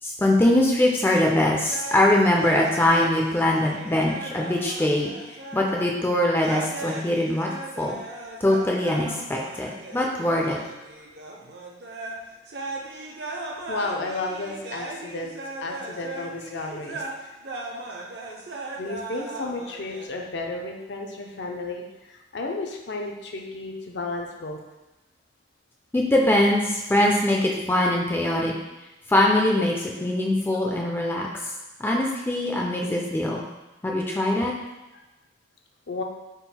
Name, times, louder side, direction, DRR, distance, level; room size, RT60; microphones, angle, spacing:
voice 1, 0.0-7.5 7.8-8.0 8.4-10.6 25.9-28.5 29.1-31.3 31.8-33.4 33.8-34.5, left 1 dB, 10° left, -1 dB, 0.3 m, -22 dB
sound 1, 1.7-5.9 6.4-12.2 12.5-20.1, right 2 dB, 60° right, 0.5 m, -37 dB
voice 2, 13.7-15.3 15.6-17.3 18.8-24.6 34.9-35.0 35.9-36.0, left 2 dB, 70° left, 1 dB, 0.5 m, -33 dB
3.7 x 2.4 x 4.2 m, 1.0 s
head